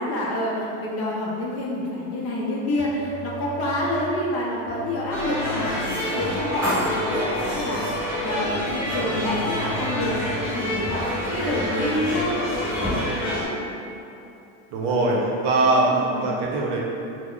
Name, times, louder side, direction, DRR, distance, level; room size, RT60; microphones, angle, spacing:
voice 1, 0.0-7.3 7.5-7.9 8.2-10.2 10.5-12.6 13.3-13.8 14.9-15.2 15.8-16.3, left 1 dB, 40° left, -4 dB, 0.6 m, -28 dB
sound 1, 2.8-4.1 4.7-6.0 6.5-7.9 8.4-10.4 10.8-12.2, right 1 dB, 25° right, 0.9 m, -38 dB
sound 2, 5.1-13.4, equal, 5° right, 1.5 m, -27 dB
voice 2, 14.7-15.2 15.4-15.9 16.2-16.8, right 2 dB, 60° right, -2 dB, 0.7 m, -21 dB
2.9 x 2.1 x 3.8 m, 2.7 s
supercardioid pair, 135°, 37 cm